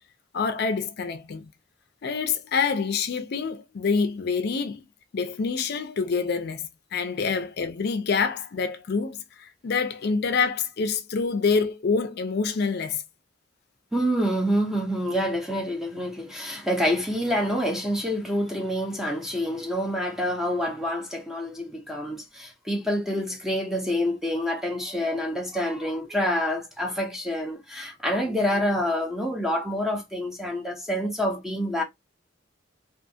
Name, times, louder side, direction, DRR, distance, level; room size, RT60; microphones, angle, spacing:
voice 1, 0.3-1.5 2.0-4.9 5.1-13.0, left 5 dB, 55° left, 0.4 m, -26 dB
voice 2, 13.9-31.8, equal, ahead, 0.6 m, -27 dB
2.4 x 2.4 x 2.7 m
head